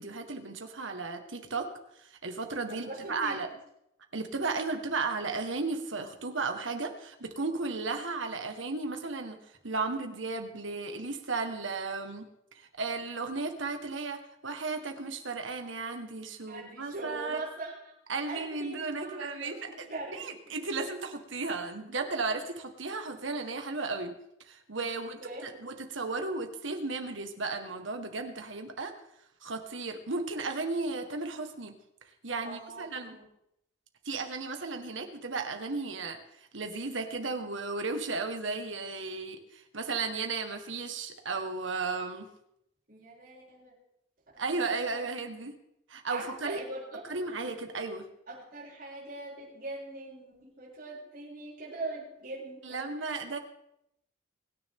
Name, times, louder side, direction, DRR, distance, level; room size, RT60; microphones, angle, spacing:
voice 1, 0.0-1.7 2.0-3.5 4.1-9.4 9.6-12.3 12.5-17.4 18.1-19.7 20.1-24.1 24.5-28.9 29.4-31.7 32.2-33.2 34.0-36.2 36.5-42.3 44.4-45.5 45.9-46.6 47.1-48.0 52.6-53.4, right 3 dB, 75° right, 5 dB, 1.7 m, -34 dB
voice 2, 2.7-3.4 16.5-17.8 18.2-20.6 24.9-25.4 32.4-33.3 42.9-43.7 44.3-45.0 45.4-45.5 46.1-47.0 48.3-53.2, right 2 dB, 45° right, -7 dB, 7.4 m, -42 dB
24.0 x 10.0 x 3.8 m, 0.79 s
head